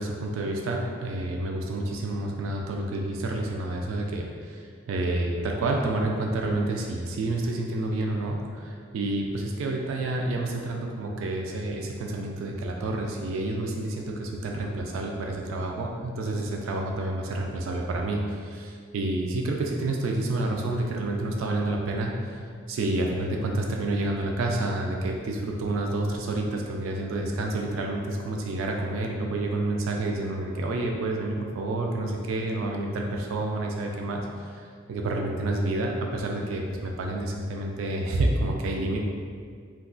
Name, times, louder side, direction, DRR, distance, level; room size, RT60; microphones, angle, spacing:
voice 1, 0.0-4.6 4.9-34.3 34.5-34.6 34.9-39.0, right 2 dB, 85° right, 1 dB, 0.3 m, -29 dB
2.3 x 2.3 x 3.7 m, 2.1 s
head